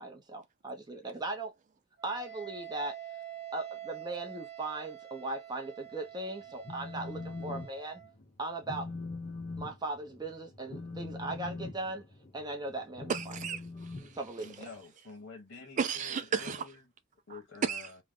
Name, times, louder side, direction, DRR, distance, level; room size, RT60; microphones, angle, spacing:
voice 1, 0.0-1.5 2.0-3.0 3.5-8.0 8.4-8.9 9.6-12.0 12.3-13.1 14.1-14.6, right 2 dB, 20° right, 0.8 m, -38 dB
Wind instrument woodwind instrument, 2.0-8.1, right 11 dB, 55° right, 1.2 m, -46 dB
Telephone, 6.4-7.7 8.0-8.3 8.6-14.8, left 3 dB, 35° left, 0.9 m, -42 dB
voice 2, 13.1-14.2 15.8-16.7 17.3-17.9, right 6 dB, 35° right, 0.3 m, -34 dB
voice 3, 14.4-16.8 17.3-18.0, left 4 dB, 70° left, 1.4 m, -48 dB
3.3 x 2.2 x 3.7 m
head